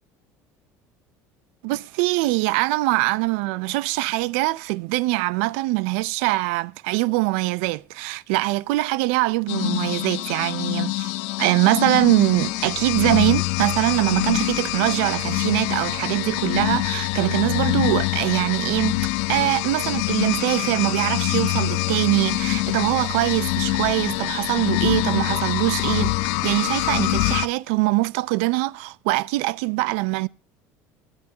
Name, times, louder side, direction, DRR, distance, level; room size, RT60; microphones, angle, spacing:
voice 1, 1.6-11.1 11.4-18.9 19.3-26.2 26.4-30.3, right 21 dB, 90° right, 0.5 m, -23 dB
sound 1, 9.5-27.5, left 21 dB, 80° left, 0.7 m, -25 dB
22.5 x 8.9 x 2.8 m
cardioid pair, 140°, 7 cm